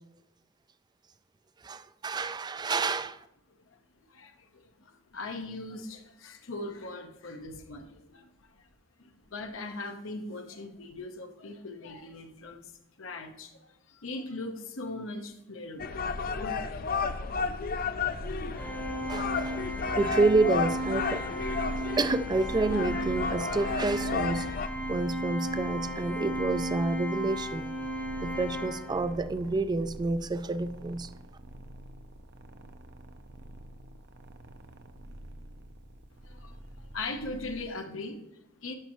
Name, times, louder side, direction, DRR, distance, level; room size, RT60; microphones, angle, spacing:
voice 1, 1.6-3.2 19.1-21.2 22.0-24.5 24.9-27.7 28.2-31.1, right 3 dB, 20° right, 13 dB, 0.3 m, -29 dB
voice 2, 4.1-8.7 9.0-12.7 13.0-17.1 36.2-38.7, left 2 dB, 75° left, 5 dB, 1.0 m, -40 dB
sound 1, 15.8-24.7, left 5 dB, 45° left, 0.5 m, -33 dB
sound 2, 18.0-37.7, right 1 dB, 60° right, 0.7 m, -45 dB
Organ, 18.6-29.3, equal, 10° left, 0.8 m, -35 dB
12.0 x 5.3 x 3.0 m, 0.86 s
head